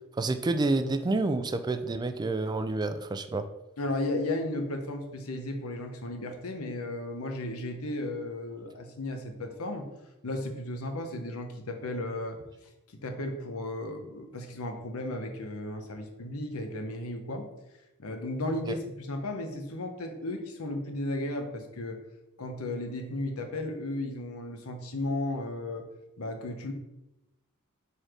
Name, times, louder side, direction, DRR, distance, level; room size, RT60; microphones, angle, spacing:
voice 1, 0.2-3.5 18.7-18.8, right 2 dB, 20° right, 10 dB, 0.3 m, -28 dB
voice 2, 3.8-9.9 10.2-12.4 12.6-17.5 18.0-22.0 22.4-25.8 26.2-26.7, left 1 dB, 85° left, 4 dB, 1.0 m, -34 dB
4.6 x 4.1 x 5.0 m, 0.96 s
head